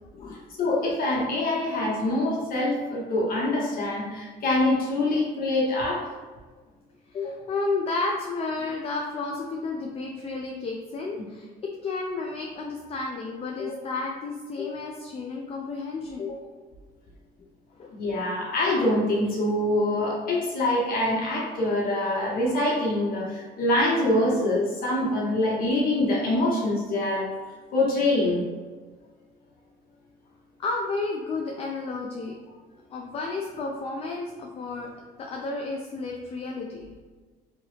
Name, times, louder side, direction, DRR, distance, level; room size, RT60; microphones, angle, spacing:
voice 1, 0.6-6.0 17.9-27.3 27.7-28.4 33.0-33.1, left 1 dB, 60° left, -3 dB, 1.1 m, -25 dB
voice 2, 7.1-16.6 17.8-17.9 30.6-32.4 32.9-34.9 35.2-37.0, left 3 dB, 35° left, 0 dB, 0.4 m, -32 dB
2.9 x 2.5 x 3.2 m, 1.4 s
cardioid pair, 110°, 17 cm